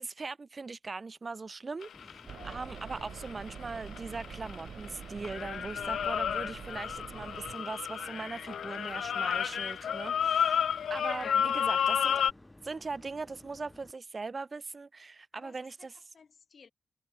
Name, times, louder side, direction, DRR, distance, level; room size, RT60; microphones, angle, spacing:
voice 1, 0.0-12.2 12.6-15.9, right 4 dB, 30° right, 1.4 m, -40 dB
sound 1, 1.8-4.9 5.2-12.3, left 8 dB, 90° left, 0.5 m, -31 dB
sound 2, 1.9-13.9, left 1 dB, 10° left, 2.3 m, -55 dB
sound 3, 2.3-7.6, right 7 dB, 70° right, 0.5 m, -46 dB
voice 2, 15.3-16.7, left 5 dB, 45° left, 5.2 m, -53 dB
wide cardioid pair, 160°, 0 cm